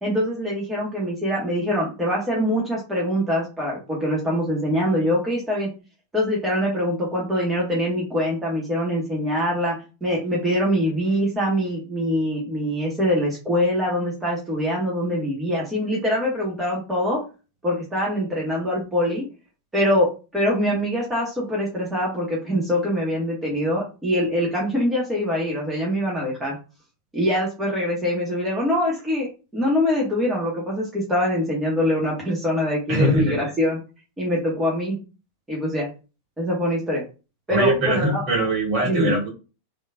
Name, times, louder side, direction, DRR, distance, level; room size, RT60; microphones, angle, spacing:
voice 1, 0.0-5.7 6.1-17.2 17.6-19.3 19.7-26.6 27.1-29.3 29.5-33.8 34.2-35.0 35.5-35.9 36.4-37.0 37.5-38.2 38.8-39.2, equal, 10° right, -4 dB, 1.3 m, -24 dB
voice 2, 32.9-33.5 37.5-39.3, right 1 dB, 40° right, -2 dB, 1.8 m, -22 dB
3.6 x 2.8 x 2.3 m, 0.32 s
figure-of-eight pair, 90°, 0 cm